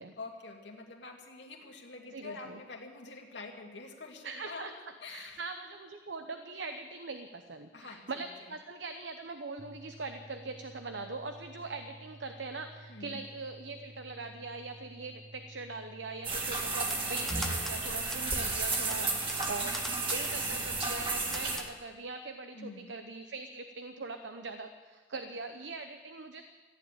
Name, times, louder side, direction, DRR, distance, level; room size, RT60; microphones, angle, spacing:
voice 1, 0.2-4.7 5.0-5.4 7.7-8.2 12.9-13.2 18.2-18.6 18.9-19.2 22.5-22.9, left 3 dB, 75° left, 1 dB, 2.3 m, -46 dB
voice 2, 2.1-2.6 4.2-4.7 5.1-19.8 20.1-26.4, right 3 dB, 80° right, 7 dB, 0.9 m, -42 dB
sound 1, 9.6-21.0, right 2 dB, 60° right, 1.5 m, -52 dB
sound 2, 16.2-21.6, right 3 dB, 30° right, 2.1 m, -32 dB
Typewriter, 16.8-17.8 18.1-18.2 18.7-20.4 20.8-21.0 21.3-21.7, left 1 dB, ahead, 0.8 m, -42 dB
15.0 x 10.5 x 8.8 m, 1.4 s
head